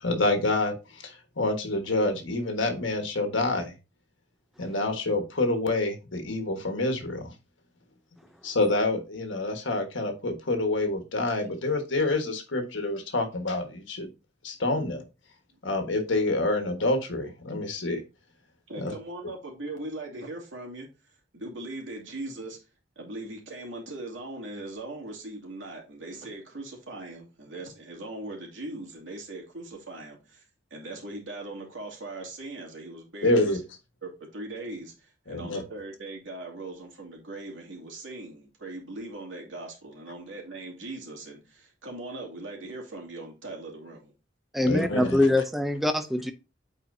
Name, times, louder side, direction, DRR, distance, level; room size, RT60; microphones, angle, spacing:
voice 1, 0.0-3.7 4.6-7.3 8.4-14.1 14.4-15.0 15.6-18.0 18.8-18.9 33.2-33.6 35.3-35.6 44.6-45.2, left 2 dB, 75° left, 1.4 m, -27 dB
voice 2, 18.7-20.9 21.3-22.6 23.0-33.6 34.0-44.1, right 2 dB, 80° right, 2.4 m, -40 dB
voice 3, 44.5-46.3, left 1 dB, ahead, 0.5 m, -24 dB
8.7 x 4.3 x 2.6 m
head